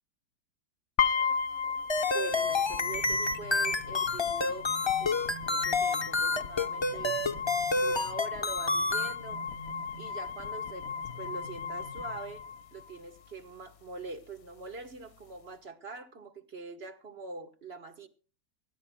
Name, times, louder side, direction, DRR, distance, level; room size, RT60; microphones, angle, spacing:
sound 1, 1.0-13.0, left 6 dB, 60° left, 1.1 m, -35 dB
sound 2, 1.9-9.1, left 3 dB, 25° left, 0.6 m, -29 dB
voice 1, 2.0-4.7 5.0-7.2 7.8-9.4 10.0-10.9 11.2-12.4 12.7-18.1, right 3 dB, 40° right, 8 dB, 1.4 m, -43 dB
sound 3, 2.3-12.8, equal, 20° right, 1.5 m, -49 dB
23.5 x 15.0 x 2.2 m, 0.37 s
omnidirectional pair, 1.9 m